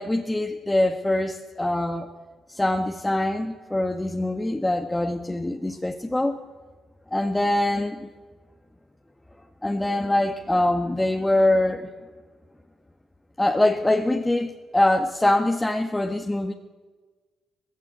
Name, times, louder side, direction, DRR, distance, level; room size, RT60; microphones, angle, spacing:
voice 1, 0.0-2.1 2.5-6.4 7.1-8.1 9.6-11.9 13.4-16.5, left 1 dB, 15° left, 3 dB, 1.7 m, -23 dB
19.5 x 16.0 x 8.4 m, 1.3 s
hypercardioid pair, 45°, 0 cm